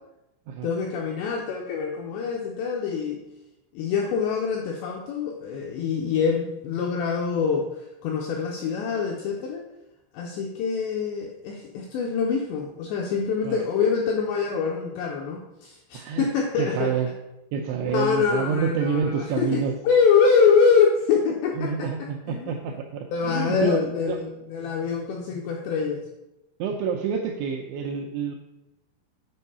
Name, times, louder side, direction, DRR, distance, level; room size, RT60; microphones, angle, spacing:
voice 1, 0.6-3.2 3.7-9.6 10.1-16.9 17.8-22.6 23.1-26.0, left 5 dB, 85° left, 1 dB, 2.4 m, -25 dB
voice 2, 15.9-16.3 16.6-17.1 17.5-19.8 21.6-23.8 24.1-24.3 26.6-28.4, right 7 dB, 85° right, 2 dB, 2.6 m, -28 dB
8.8 x 4.6 x 5.5 m, 0.94 s
omnidirectional pair, 6.0 m